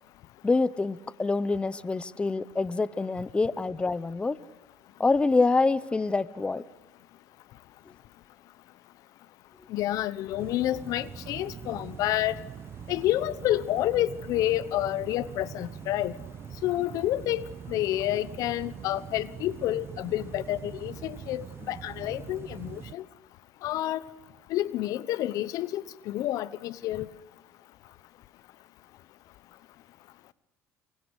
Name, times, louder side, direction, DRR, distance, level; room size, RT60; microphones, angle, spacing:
voice 1, 0.4-4.4 5.0-6.6, left 3 dB, 15° left, 20 dB, 0.8 m, -26 dB
voice 2, 9.7-12.4 12.9-16.1 16.6-23.0 23.6-24.0 24.5-27.1, left 14 dB, 65° left, 20 dB, 1.1 m, -29 dB
sound 1, 10.4-22.9, right 8 dB, 40° right, 1.2 m, -43 dB
28.5 x 24.0 x 8.2 m, 1.1 s
cardioid pair, 105°, 6 cm